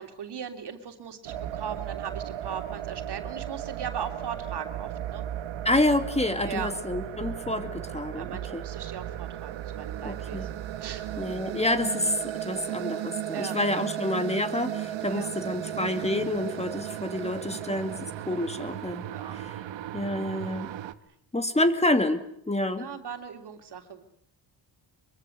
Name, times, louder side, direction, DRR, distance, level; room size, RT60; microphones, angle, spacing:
voice 1, 0.0-5.3 6.4-6.7 8.1-10.5 10.8-11.1 13.3-13.6 15.1-15.3 19.1-19.4 22.8-24.0, right 7 dB, 60° right, 6 dB, 3.3 m, -38 dB
sound 1, 1.3-20.9, right 11 dB, 85° right, 1.4 m, -35 dB
voice 2, 5.6-8.6 10.0-10.5 11.2-19.1 19.3-19.5 19.9-20.7 21.3-22.9, left 1 dB, 15° left, 8 dB, 2.2 m, -28 dB
24.5 x 23.5 x 8.1 m, 0.70 s
cardioid pair, 105°, 44 cm